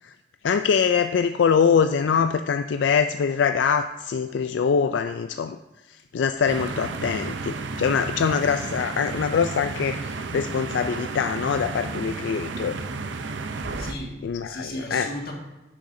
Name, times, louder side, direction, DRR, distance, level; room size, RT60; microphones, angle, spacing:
voice 1, 0.4-5.6 6.1-12.8 14.2-15.1, left 6 dB, 85° left, 8 dB, 0.4 m, -23 dB
sound 1, 6.5-13.9, right 3 dB, 85° right, 0.6 m, -32 dB
voice 2, 13.5-15.3, left 1 dB, 55° left, -1 dB, 1.9 m, -35 dB
10.5 x 8.6 x 2.7 m, 1.1 s
head